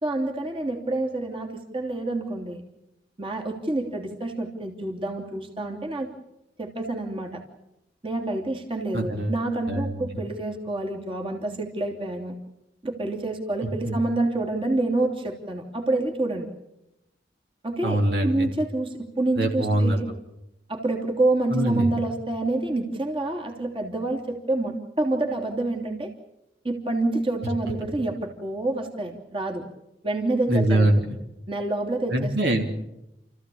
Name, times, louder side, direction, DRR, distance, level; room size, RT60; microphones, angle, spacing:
voice 1, 0.0-2.6 3.2-6.1 6.6-7.4 8.0-12.3 12.8-16.5 17.6-18.0 18.2-20.1 20.7-26.1 26.6-29.6 30.0-30.9 31.5-32.3, right 2 dB, 30° right, 2 dB, 3.1 m, -27 dB
voice 2, 8.9-9.3 9.7-10.1 13.8-13.9 17.8-18.5 19.4-20.0 21.5-21.9 30.5-31.0 32.1-32.6, right 1 dB, 70° right, 2 dB, 3.2 m, -23 dB
29.5 x 15.0 x 8.6 m, 0.89 s
head